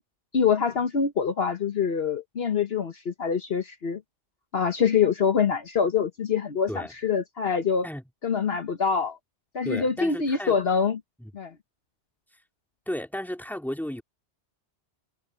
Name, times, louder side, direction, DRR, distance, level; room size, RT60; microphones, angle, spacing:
voice 1, 0.3-4.0 4.5-7.9 8.2-9.2 9.5-11.0 11.3-11.5, left 6 dB, 60° left, 1.3 m, -25 dB
voice 2, 9.6-10.6 11.2-11.3 12.9-14.0, left 1 dB, ahead, 2.5 m, -33 dB
omnidirectional pair, 1.2 m